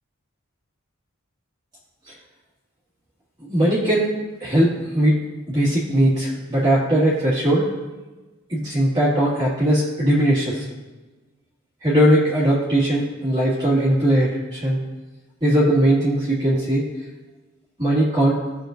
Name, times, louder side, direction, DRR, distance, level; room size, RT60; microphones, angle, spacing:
voice 1, 3.4-4.1 4.4-5.2 5.5-7.7 8.5-10.7 11.8-14.8 15.4-16.8 17.8-18.4, right 1 dB, 20° right, -8 dB, 2.1 m, -19 dB
18.0 x 6.5 x 2.6 m, 1.2 s
head